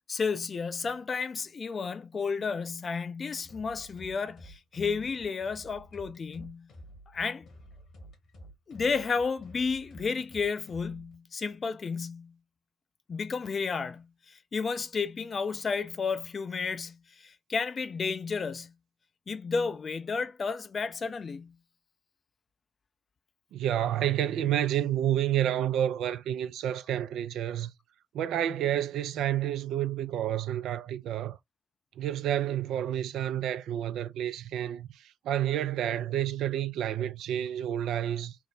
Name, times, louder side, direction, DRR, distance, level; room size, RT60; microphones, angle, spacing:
voice 1, 0.1-6.7 7.1-7.5 8.7-12.4 13.1-18.7 19.3-21.6, left 5 dB, 40° left, 0.4 m, -32 dB
sound 1, 3.4-11.1, equal, 55° left, 1.1 m, -51 dB
voice 2, 23.5-27.7 28.1-31.4 32.0-38.4, right 11 dB, 60° right, 0.3 m, -29 dB
3.4 x 2.0 x 2.5 m
figure-of-eight pair, 40°, 0 cm